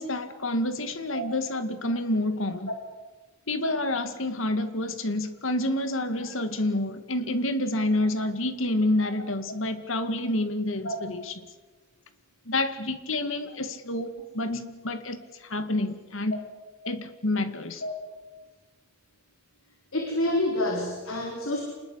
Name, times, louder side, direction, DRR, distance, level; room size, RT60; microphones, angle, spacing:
voice 1, 0.0-2.7 3.5-11.4 12.5-16.3 16.9-17.8, left 1 dB, 70° left, 2.0 m, -28 dB
voice 2, 19.9-21.6, left 1 dB, 90° left, 4.1 m, -28 dB
27.0 x 20.5 x 8.1 m
head